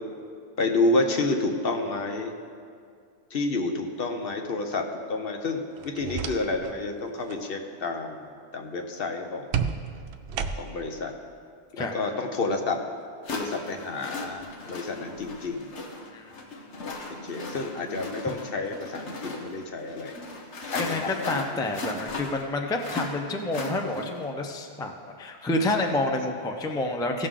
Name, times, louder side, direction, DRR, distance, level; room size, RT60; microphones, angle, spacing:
voice 1, 0.6-2.3 3.3-8.3 8.5-9.5 10.6-11.1 11.7-12.8 13.3-15.7 17.2-20.2 20.7-21.5, left 2 dB, 60° left, 4 dB, 1.0 m, -29 dB
sound 1, 5.8-6.8 7.1-7.4 9.5-10.9, right 6 dB, 65° right, 0.7 m, -32 dB
sound 2, 12.3-12.4 13.2-24.3, left 2 dB, 85° left, 1.4 m, -37 dB
voice 2, 20.8-27.3, left 2 dB, 5° left, 3 dB, 0.4 m, -29 dB
16.5 x 6.5 x 3.8 m, 2.2 s
omnidirectional pair, 1.1 m